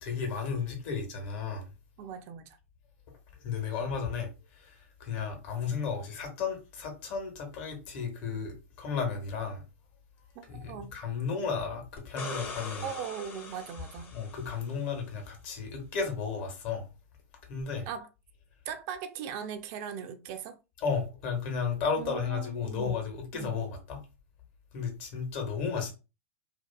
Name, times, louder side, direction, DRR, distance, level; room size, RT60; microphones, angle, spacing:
voice 1, 0.0-1.7 3.4-4.3 4.6-4.7 5.0-9.6 10.5-12.9 14.1-16.9 17.5-17.8 20.8-24.0 24.7-25.9, left 5 dB, 50° left, 1.1 m, -33 dB
voice 2, 2.0-2.6 10.4-10.9 12.8-14.1 17.9-18.1 18.7-20.6 22.0-22.9 23.3-23.5, right 8 dB, 45° right, 0.4 m, -39 dB
sound 1, 12.0-14.8 17.6-17.7, left 4 dB, 25° left, 0.7 m, -42 dB
2.6 x 2.4 x 2.2 m
hypercardioid pair, 105°, 8 cm